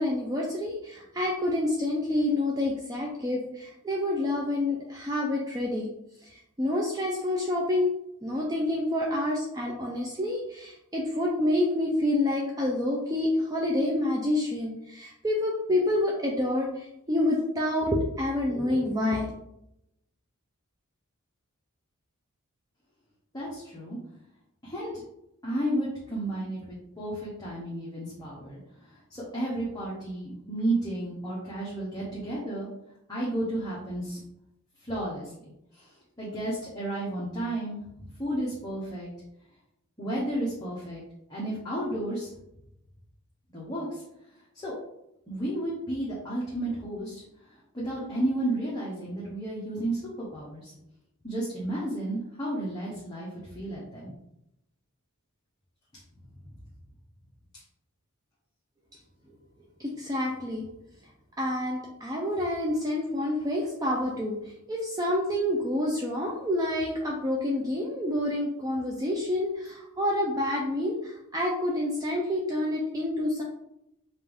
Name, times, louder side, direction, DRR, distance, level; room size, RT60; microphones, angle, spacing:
voice 1, 0.0-5.9 6.2-7.9 8.2-19.3 59.8-60.7 61.4-73.4, left 1 dB, 15° right, -2 dB, 0.5 m, -28 dB
voice 2, 23.3-24.0 24.6-24.9 25.4-32.7 33.1-34.2 34.8-37.8 38.2-39.1 40.0-41.0 41.3-42.3 43.5-44.0 44.3-44.7 45.3-47.2 47.5-50.0 50.3-50.7 51.2-54.1 56.4-56.5, right 1 dB, 20° left, -7 dB, 1.0 m, -32 dB
5.3 x 2.6 x 3.5 m, 0.82 s
head